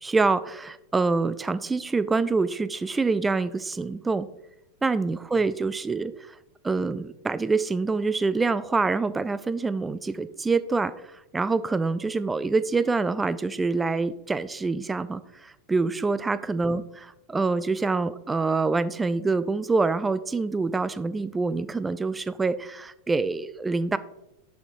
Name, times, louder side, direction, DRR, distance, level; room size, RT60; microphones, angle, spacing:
voice 1, 0.0-4.3 4.8-6.1 6.6-11.0 11.3-16.8 17.3-24.0, right 3 dB, 10° right, 16 dB, 0.3 m, -26 dB
11.0 x 5.7 x 2.6 m, 0.89 s
figure-of-eight pair, 90°, 0 cm